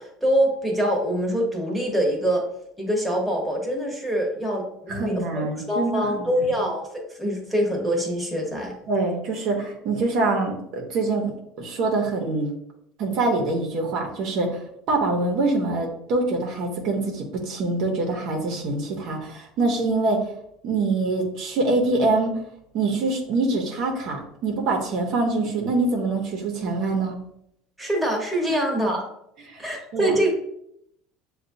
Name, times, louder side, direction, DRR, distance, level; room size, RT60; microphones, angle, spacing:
voice 1, 0.0-2.4 2.8-8.7 27.8-29.0 29.6-30.3, equal, ahead, -2 dB, 1.1 m, -24 dB
voice 2, 4.9-6.5 8.9-12.5 13.0-14.6 14.9-20.2 20.6-22.3 22.7-27.2 28.5-28.6 29.5-29.6 29.9-30.1, right 3 dB, 60° right, 1 dB, 0.9 m, -25 dB
6.6 x 2.4 x 2.7 m, 0.76 s
supercardioid pair, 110°, 0 cm